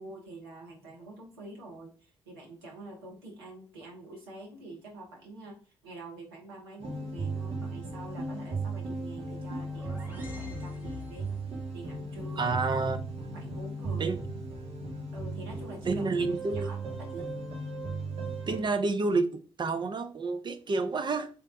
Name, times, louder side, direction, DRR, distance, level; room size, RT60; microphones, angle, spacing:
voice 1, 0.0-5.6 5.8-11.3 11.7-13.0 13.3-14.1 15.1-16.1 16.4-17.3, right 2 dB, 85° right, 0.8 m, -46 dB
sound 1, 6.8-18.6, right 3 dB, 60° right, 1.3 m, -36 dB
sound 2, 9.3-11.6, left 4 dB, 15° right, 1.4 m, -45 dB
voice 2, 12.4-13.0 14.0-14.2 15.8-16.7 18.5-21.3, right 3 dB, 40° right, 0.6 m, -29 dB
3.4 x 2.8 x 3.6 m
hypercardioid pair, 40°, 12 cm